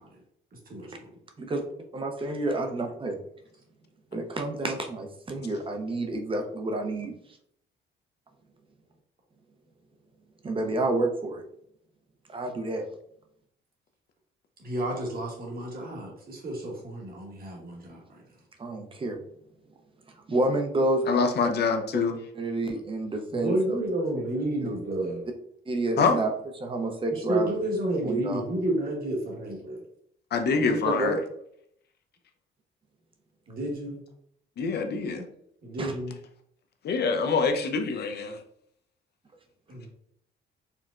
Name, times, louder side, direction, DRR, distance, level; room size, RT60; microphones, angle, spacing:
voice 1, 0.7-1.1 14.6-18.0 23.3-25.2 25.9-26.0 27.3-29.8 33.5-34.0 35.6-36.2 39.7-39.9, right 1 dB, 50° right, -1 dB, 1.2 m, -30 dB
voice 2, 1.9-3.2 4.1-7.1 10.4-11.4 12.3-12.9 18.6-19.2 20.3-21.2 21.9-22.0 22.3-23.8 24.6-24.7 25.7-26.3 26.6-27.5 28.0-28.4 30.7-31.2 35.8-35.9, right 2 dB, 25° right, 4 dB, 0.6 m, -29 dB
voice 3, 21.1-22.2 26.0-26.2 30.3-31.2 34.6-35.2 36.8-38.4, left 5 dB, 55° left, 6 dB, 0.5 m, -25 dB
4.4 x 2.1 x 2.4 m, 0.71 s
cardioid pair, 90°, 20 cm